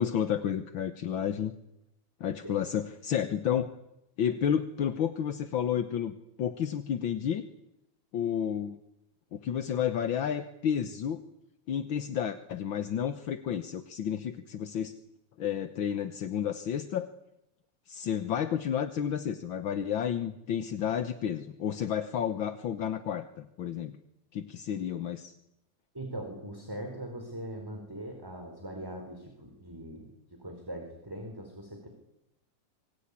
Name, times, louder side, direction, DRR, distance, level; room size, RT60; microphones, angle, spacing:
voice 1, 0.0-1.6 2.2-3.7 4.2-7.4 8.1-8.8 9.3-11.2 11.7-14.9 15.4-17.1 17.9-24.0 24.3-25.3, left 9 dB, 55° left, 9 dB, 1.5 m, -31 dB
voice 2, 25.9-30.1 30.4-31.9, right 1 dB, 5° right, 3 dB, 4.5 m, -41 dB
26.0 x 23.0 x 9.8 m, 0.84 s
omnidirectional pair, 3.4 m